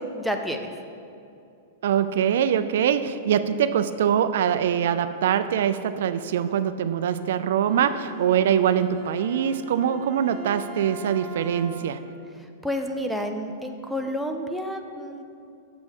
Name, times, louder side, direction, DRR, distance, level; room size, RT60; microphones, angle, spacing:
voice 1, 0.2-0.7 12.6-15.2, equal, ahead, 3 dB, 0.5 m, -29 dB
voice 2, 1.8-12.0, right 9 dB, 70° right, 11 dB, 0.4 m, -23 dB
Bowed string instrument, 7.7-12.0, right 4 dB, 20° right, 1.1 m, -42 dB
7.6 x 7.0 x 4.5 m, 2.6 s
supercardioid pair, 150°, 0 cm